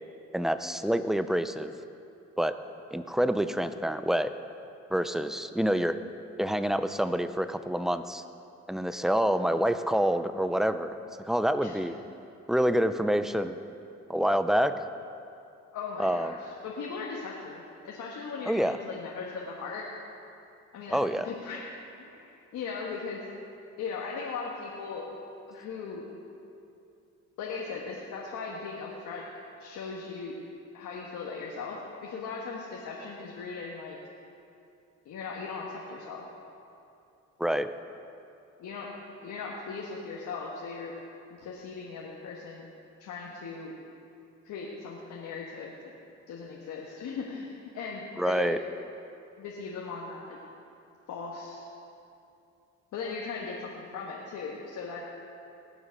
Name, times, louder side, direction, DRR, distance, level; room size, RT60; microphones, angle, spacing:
voice 1, 0.3-1.7 2.4-2.6 2.9-4.3 4.9-6.0 6.4-8.2 8.7-11.0 11.2-12.0 12.5-13.6 14.1-14.8 16.0-16.4 18.5-18.8 20.9-21.3 37.4-37.7 48.2-48.6, equal, ahead, 11 dB, 0.5 m, -27 dB
voice 2, 15.7-19.9 20.7-21.7 22.0-23.2 23.8-25.1 25.5-26.0 27.4-29.2 29.6-30.3 30.7-34.0 35.0-36.2 38.6-38.9 39.2-40.9 41.3-42.7 43.0-43.8 44.4-45.9 46.3-48.6 49.4-50.4 51.1-51.6 52.9-55.0, left 4 dB, 75° left, -3 dB, 1.6 m, -38 dB
19.0 x 7.1 x 5.3 m, 2.7 s
cardioid pair, 90°, 30 cm